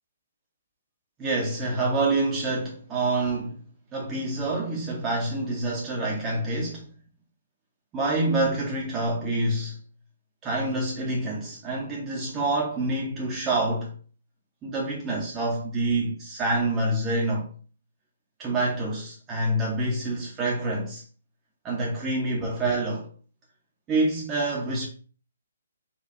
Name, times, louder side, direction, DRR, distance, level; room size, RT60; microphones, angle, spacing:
voice 1, 1.2-3.6 3.9-6.8 7.9-9.8 10.4-13.9 14.6-17.5 18.4-21.0 21.6-23.1 23.9-24.9, right 2 dB, 20° right, 0.8 m, -27 dB
4.1 x 2.2 x 2.7 m
figure-of-eight pair, 130°, 0 cm